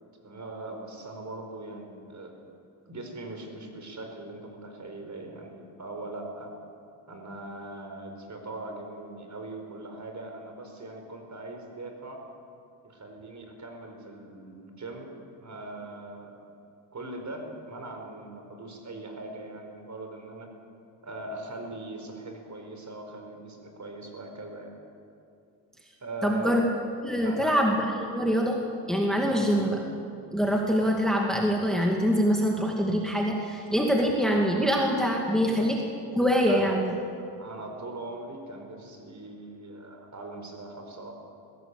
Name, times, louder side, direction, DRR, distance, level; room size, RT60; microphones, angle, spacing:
voice 1, 0.2-2.3 2.9-6.5 7.1-12.3 12.8-15.1 15.4-16.5 16.9-20.6 21.0-24.7 26.0-26.6 27.2-27.6 29.3-29.7 35.4-35.6 36.5-36.7 37.4-41.1, right 2 dB, 35° right, 3 dB, 4.7 m, -40 dB
voice 2, 26.2-26.7 27.0-29.8 30.3-35.8 36.2-36.9, equal, ahead, 0 dB, 2.2 m, -24 dB
20.5 x 17.0 x 8.4 m, 2.5 s
cardioid pair, 95°, 46 cm